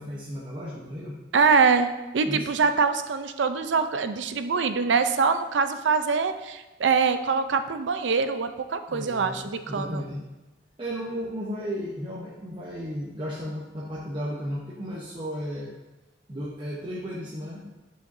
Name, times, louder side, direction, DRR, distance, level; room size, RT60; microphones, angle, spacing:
voice 1, 0.0-1.2 2.2-2.5 8.9-9.4 9.7-10.3 10.8-15.7 16.3-17.6, equal, 30° right, -5 dB, 0.8 m, -34 dB
voice 2, 1.3-10.0, right 5 dB, 75° right, 9 dB, 0.5 m, -24 dB
9.4 x 5.0 x 2.6 m, 1.1 s
head